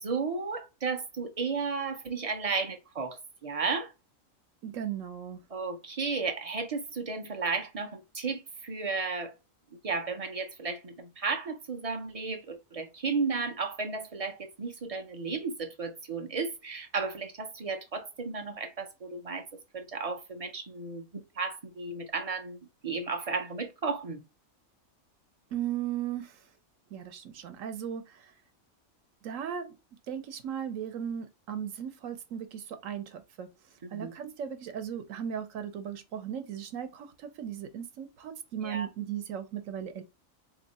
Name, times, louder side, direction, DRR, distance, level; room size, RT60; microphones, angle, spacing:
voice 1, 0.0-3.9 5.5-9.3 9.8-19.5 19.7-21.0 21.4-22.6 22.8-24.2 33.9-34.1 38.6-38.9, right 4 dB, 45° right, 0.5 m, -33 dB
voice 2, 4.6-5.4 25.5-26.5 26.9-28.3 29.2-29.8 30.1-33.5 33.9-40.0, right 9 dB, 75° right, 1.1 m, -37 dB
3.5 x 2.9 x 4.1 m
omnidirectional pair, 1.4 m